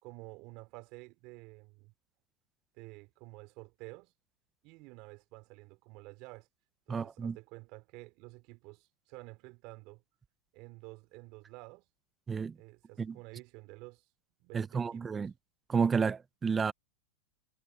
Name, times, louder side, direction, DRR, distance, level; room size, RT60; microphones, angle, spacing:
voice 1, 0.0-1.9 2.7-4.1 4.6-6.5 6.9-10.0 10.5-11.8 12.6-14.0 14.4-15.3, right 24 dB, 50° right, 3.5 m, -50 dB
voice 2, 6.9-7.4 12.3-12.6 13.0-13.2 14.5-15.3 15.7-16.7, right 5 dB, 20° right, 0.8 m, -31 dB
hypercardioid pair, 110°, 0 cm